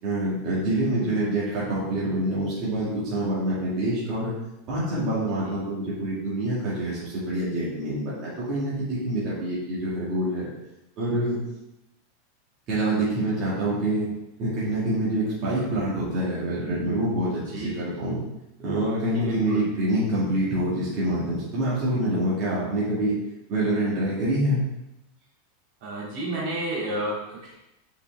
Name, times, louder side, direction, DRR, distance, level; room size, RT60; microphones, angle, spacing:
voice 1, 0.0-4.3 4.7-10.5 11.0-11.4 12.7-14.1 14.4-18.2 18.6-23.2 23.5-24.6, right 1 dB, 35° right, -9 dB, 2.1 m, -26 dB
voice 2, 19.1-19.7 25.8-27.6, right 1 dB, 55° right, -5 dB, 2.4 m, -32 dB
5.7 x 5.0 x 3.5 m, 0.91 s
supercardioid pair, 160°, 0 cm